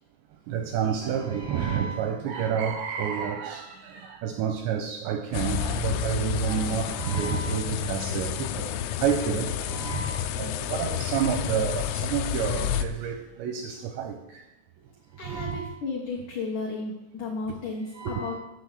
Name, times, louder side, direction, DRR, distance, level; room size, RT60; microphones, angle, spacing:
voice 1, 0.5-8.7 9.0-14.4 15.2-15.7 17.9-18.4, right 8 dB, 85° right, 2.6 m, -29 dB
sound 1, 5.3-12.8, left 10 dB, 80° left, 3.1 m, -30 dB
voice 2, 15.2-18.4, left 3 dB, 65° left, 2.0 m, -33 dB
8.3 x 6.3 x 8.3 m
omnidirectional pair, 5.7 m